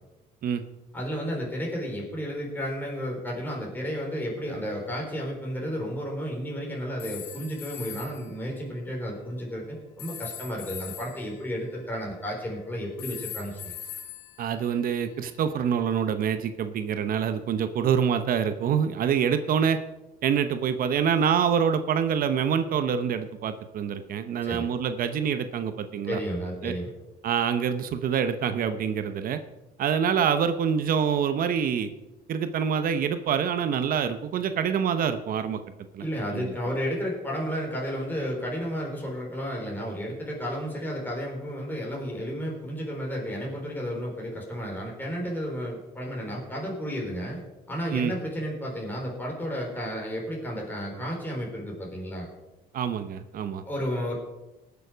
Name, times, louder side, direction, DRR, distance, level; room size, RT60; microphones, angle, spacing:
voice 1, 0.9-13.7 24.4-24.7 26.1-26.9 36.0-47.4 47.7-52.3 53.7-54.2, equal, 10° left, -2 dB, 4.2 m, -32 dB
sound 1, 7.0-8.3 10.0-12.5 13.0-15.3, left 8 dB, 85° left, 1.6 m, -42 dB
voice 2, 14.4-19.8 20.2-26.2 26.6-26.7 27.2-29.4 29.8-31.9 32.3-35.6 35.9-36.0 36.3-36.5 47.9-48.1 52.7-53.6, right 7 dB, 55° right, 10 dB, 0.9 m, -26 dB
18.5 x 7.0 x 5.1 m, 1.0 s
cardioid pair, 110°, 17 cm